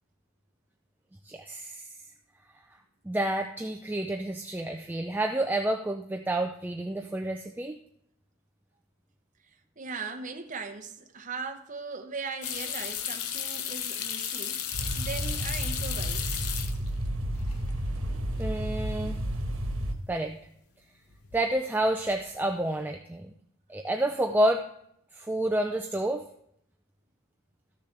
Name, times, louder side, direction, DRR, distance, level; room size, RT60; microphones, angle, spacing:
voice 1, 1.2-1.9 3.1-7.8 18.4-19.2 20.1-20.4 21.3-23.3 23.7-24.6 25.1-26.3, right 1 dB, 10° right, 0.3 m, -29 dB
voice 2, 9.8-14.7 15.0-16.4, right 4 dB, 35° right, 0.8 m, -39 dB
sound 1, 12.4-17.1 17.4-18.0 18.3-18.4 21.1-21.5 21.8-22.3, left 9 dB, 85° left, 0.7 m, -34 dB
sound 2, 14.7-19.9, right 1 dB, 70° right, 1.3 m, -31 dB
13.5 x 6.7 x 3.3 m
head